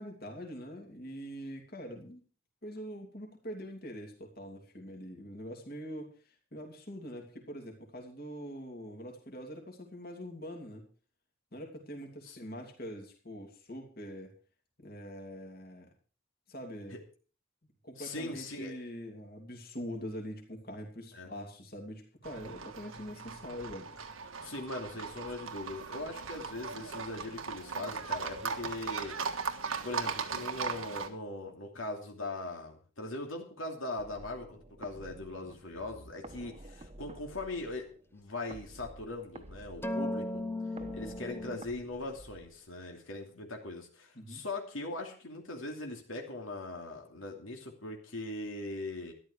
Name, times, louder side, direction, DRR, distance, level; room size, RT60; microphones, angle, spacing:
voice 1, 0.0-2.2 2.6-6.1 6.5-10.8 11.5-14.3 14.8-15.9 16.5-17.0 17.8-23.9 44.1-44.4, equal, 50° left, 2 dB, 2.9 m, -43 dB
voice 2, 18.0-18.7 21.1-21.3 24.4-29.1 29.8-37.9 38.1-40.5 40.9-49.1, left 2 dB, 80° left, 1 dB, 2.8 m, -40 dB
Livestock farm animals working animals, 22.2-31.1, right 5 dB, 90° right, 1.5 m, -38 dB
sound 1, 34.0-42.9, right 1 dB, 30° right, 1.1 m, -51 dB
sound 2, 39.8-41.6, left 1 dB, 10° left, 0.5 m, -36 dB
13.0 x 11.5 x 4.9 m, 0.40 s
head